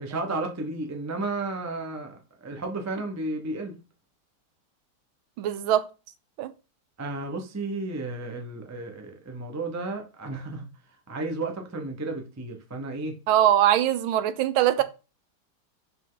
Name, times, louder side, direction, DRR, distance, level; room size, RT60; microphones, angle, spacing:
voice 1, 0.0-3.8 7.0-10.7 11.1-13.2 14.8-14.9, right 2 dB, 20° right, 0.4 m, -33 dB
voice 2, 5.4-5.9 6.4-6.5 13.3-14.8, right 11 dB, 80° right, 1.4 m, -22 dB
5.4 x 5.2 x 3.9 m
omnidirectional pair, 2.3 m